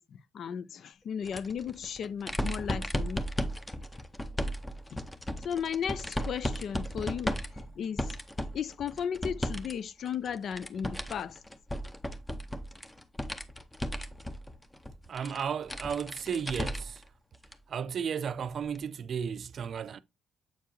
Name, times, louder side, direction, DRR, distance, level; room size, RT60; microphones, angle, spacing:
voice 1, 0.0-3.2 4.9-5.0 5.4-7.4 7.8-8.1 8.5-11.4, left 7 dB, 60° left, 0.5 m, -35 dB
sound 1, 1.2-9.7 10.0-17.0 17.4-17.5 18.8-18.9, equal, 15° left, 0.8 m, -35 dB
voice 2, 15.1-17.0 17.7-20.0, right 7 dB, 55° right, 0.5 m, -34 dB
7.7 x 4.6 x 3.0 m
cardioid pair, 90°, 0 cm